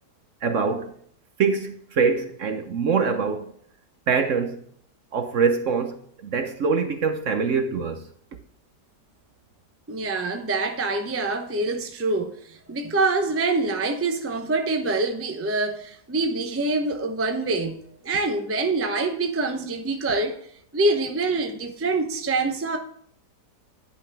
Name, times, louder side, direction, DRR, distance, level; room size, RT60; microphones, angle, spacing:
voice 1, 0.4-0.9 1.4-3.5 4.1-4.6 5.1-6.0 6.2-8.0, right 5 dB, 55° right, 1.0 m, -24 dB
voice 2, 9.9-20.4 20.7-22.8, right 3 dB, 15° right, 0.4 m, -25 dB
10.5 x 5.8 x 3.4 m
omnidirectional pair, 1.8 m